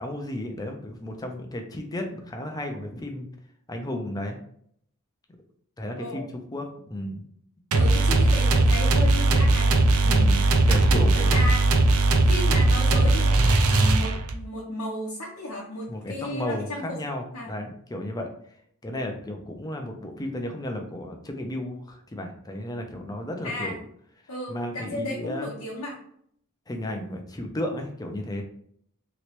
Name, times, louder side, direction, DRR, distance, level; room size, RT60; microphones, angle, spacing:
voice 1, 0.0-3.3 3.7-4.4 5.8-6.3 6.5-7.2 10.0-11.3 15.9-18.3 18.8-23.8 24.5-25.5 26.7-28.4, left 1 dB, 15° left, 3 dB, 0.5 m, -33 dB
voice 2, 6.0-6.3 7.8-9.8 11.1-11.6 12.2-17.0 17.3-17.5 23.4-23.8 24.3-26.0, left 1 dB, 80° left, -4 dB, 0.8 m, -34 dB
sound 1, 7.7-14.4, right 2 dB, 75° right, 0.4 m, -19 dB
3.0 x 2.9 x 3.1 m, 0.67 s
head